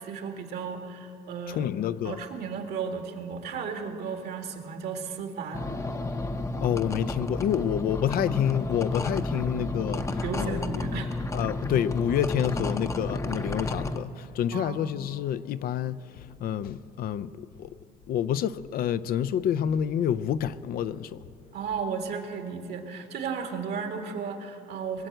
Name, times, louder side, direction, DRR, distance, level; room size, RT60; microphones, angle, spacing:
voice 1, 0.0-1.7 2.0-5.7 10.2-11.1 14.5-14.8 21.5-25.1, right 6 dB, 70° right, 1.9 m, -34 dB
voice 2, 1.5-2.2 6.6-10.8 11.3-17.8 18.1-21.2, left 9 dB, 60° left, 0.5 m, -28 dB
sound 1, 5.5-14.0, left 2 dB, 20° left, 0.7 m, -31 dB
22.5 x 7.7 x 7.9 m
cardioid pair, 110°, 17 cm